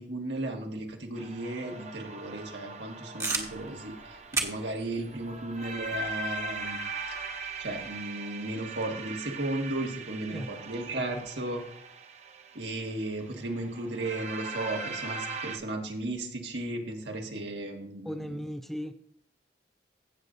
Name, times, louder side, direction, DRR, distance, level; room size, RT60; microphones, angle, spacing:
voice 1, 0.0-6.8 7.1-7.2 7.6-11.6 12.5-18.4, right 2 dB, 75° right, 1 dB, 1.7 m, -35 dB
sound 1, 1.1-15.6, right 3 dB, 35° right, 0.7 m, -40 dB
sound 2, 3.2-8.0, right 3 dB, 15° right, 1.1 m, -38 dB
voice 2, 18.1-18.9, equal, ahead, 8 dB, 0.3 m, -36 dB
16.0 x 6.9 x 2.6 m, 0.65 s
head